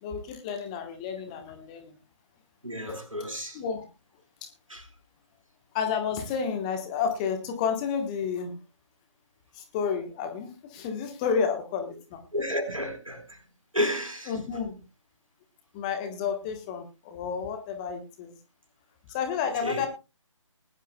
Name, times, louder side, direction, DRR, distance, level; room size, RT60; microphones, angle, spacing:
voice 1, 0.0-1.9 2.9-3.0 3.5-3.8 4.4-4.5 5.7-8.5 9.5-12.2 14.3-14.8 15.7-18.3 19.1-19.9, left 6 dB, 15° left, 1.2 m, -31 dB
voice 2, 2.6-3.6 4.7-4.9 12.3-13.4 13.7-14.3 19.6-19.9, left 1 dB, 85° right, 4.4 m, -31 dB
20.5 x 11.5 x 2.3 m
figure-of-eight pair, 150°, 17 cm